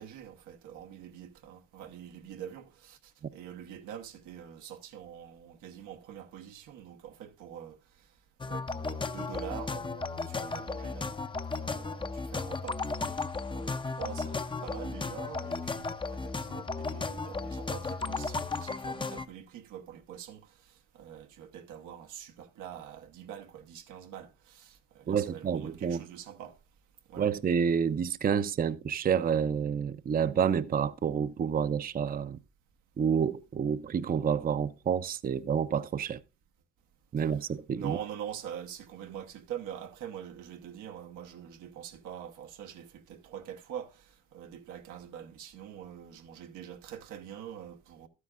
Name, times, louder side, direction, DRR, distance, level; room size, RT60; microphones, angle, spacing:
voice 1, 0.0-7.8 8.5-11.2 11.6-12.8 13.5-26.6 27.1-27.3 37.7-48.1, right 9 dB, 90° right, 1.0 m, -44 dB
sound 1, 8.4-19.3, left 3 dB, 15° left, 0.5 m, -35 dB
voice 2, 25.1-26.0 27.2-32.4 33.0-36.2 37.1-38.0, right 7 dB, 30° right, 0.5 m, -29 dB
12.0 x 9.5 x 2.4 m
cardioid pair, 90°, 30 cm